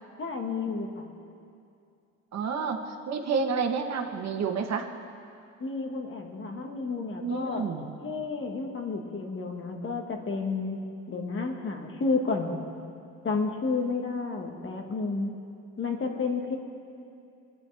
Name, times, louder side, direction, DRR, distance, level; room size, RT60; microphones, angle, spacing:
voice 1, 0.2-1.1 5.6-7.6 8.0-10.8 11.1-12.6 13.2-15.3 15.8-16.6, left 4 dB, 40° left, 2 dB, 1.7 m, -31 dB
voice 2, 2.3-2.8 3.1-4.9 7.2-7.9, right 5 dB, 60° right, 3 dB, 1.2 m, -29 dB
23.0 x 9.3 x 3.4 m, 2.5 s
cardioid pair, 90°, 30 cm